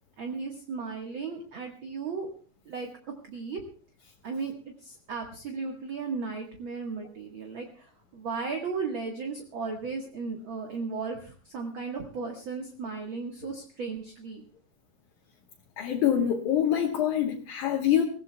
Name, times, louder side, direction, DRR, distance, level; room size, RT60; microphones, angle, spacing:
voice 1, 0.2-2.3 2.7-2.9 3.2-3.6 4.2-4.5 4.8-14.4, right 4 dB, 45° right, 2 dB, 1.9 m, -35 dB
voice 2, 15.8-18.0, left 10 dB, 70° left, -1 dB, 2.7 m, -25 dB
24.5 x 16.0 x 2.3 m, 0.39 s
omnidirectional pair, 3.7 m